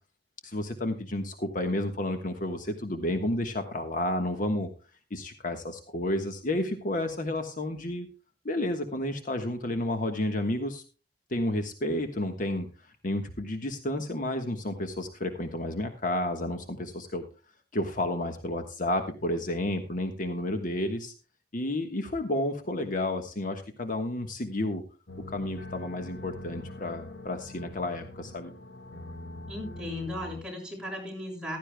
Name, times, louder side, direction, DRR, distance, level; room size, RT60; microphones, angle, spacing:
voice 1, 0.4-4.7 5.1-8.1 8.4-10.8 11.3-12.7 13.0-17.2 17.7-21.1 21.5-24.8 25.3-28.5, left 1 dB, 50° left, 6 dB, 1.4 m, -31 dB
sound 1, 25.1-30.4, left 1 dB, 70° left, 1.7 m, -43 dB
voice 2, 29.5-31.6, left 1 dB, 5° right, -2 dB, 6.5 m, -36 dB
15.5 x 13.5 x 2.2 m, 0.33 s
head